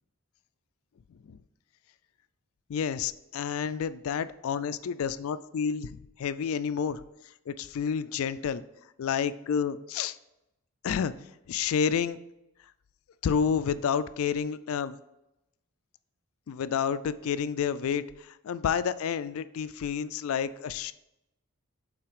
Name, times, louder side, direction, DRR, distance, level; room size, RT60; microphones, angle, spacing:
voice 1, 2.7-7.0 7.5-8.6 9.0-10.2 10.8-11.1 11.5-12.2 13.2-15.0 16.5-20.9, left 7 dB, 65° left, 14 dB, 0.3 m, -29 dB
5.7 x 4.0 x 5.0 m, 0.91 s
head